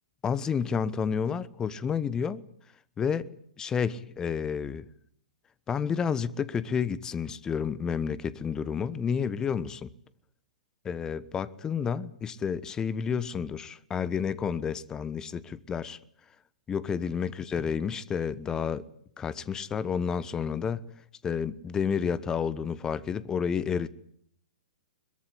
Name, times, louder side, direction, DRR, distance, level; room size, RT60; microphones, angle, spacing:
voice 1, 0.2-2.4 3.0-4.8 5.7-9.9 10.8-16.0 16.7-18.9 19.2-20.8 21.2-23.9, left 7 dB, 15° left, 1.2 m, -30 dB
22.5 x 22.0 x 10.0 m
figure-of-eight pair, 115°, 4 cm